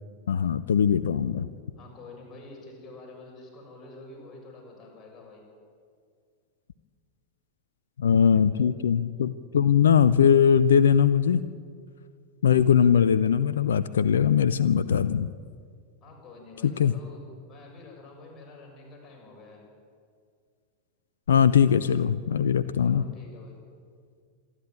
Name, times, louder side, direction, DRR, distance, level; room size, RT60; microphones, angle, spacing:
voice 1, 0.3-1.5 8.0-11.4 12.4-15.3 16.6-16.9 21.3-23.0, left 8 dB, 65° left, 15 dB, 0.6 m, -21 dB
voice 2, 1.8-5.4 16.0-19.6 22.8-23.6, left 2 dB, 25° left, -1 dB, 6.9 m, -47 dB
26.0 x 11.5 x 9.2 m, 2.1 s
figure-of-eight pair, 90°, 0 cm